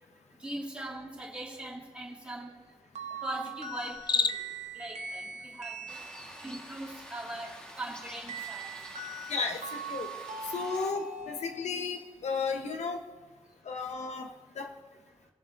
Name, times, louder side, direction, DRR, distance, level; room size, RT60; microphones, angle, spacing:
voice 1, 0.4-2.5 3.2-4.4 4.7-8.9, right 1 dB, 10° right, -7 dB, 2.6 m, -41 dB
opposite pitch down, 3.0-6.7 8.3-12.1, right 4 dB, 85° right, 1.0 m, -42 dB
Cricket, 3.9-4.7, left 5 dB, 40° left, 0.4 m, -29 dB
sound 1, 5.9-10.9, equal, 10° left, 1.5 m, -47 dB
voice 2, 9.3-10.1 10.5-13.0 13.7-14.3 14.6-14.7, left 4 dB, 75° left, 5 dB, 0.9 m, -33 dB
20.5 x 7.5 x 2.6 m, 1.3 s
wide cardioid pair, 135°, 12 cm